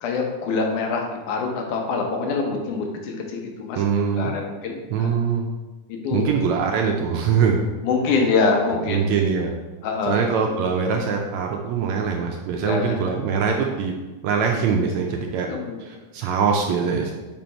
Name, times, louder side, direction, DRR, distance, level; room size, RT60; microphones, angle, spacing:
voice 1, 0.0-3.8 4.1-5.1 5.9-6.3 7.8-9.1 9.8-10.2 12.6-13.0 15.4-15.8, left 4 dB, 80° left, 2 dB, 2.3 m, -25 dB
voice 2, 3.7-4.3 4.9-5.5 6.1-7.7 8.1-8.2 8.9-9.6 10.1-13.9 14.2-15.5 15.8-17.1, right 6 dB, 75° right, 2 dB, 1.7 m, -23 dB
5.4 x 5.0 x 4.4 m, 1.2 s
omnidirectional pair, 3.6 m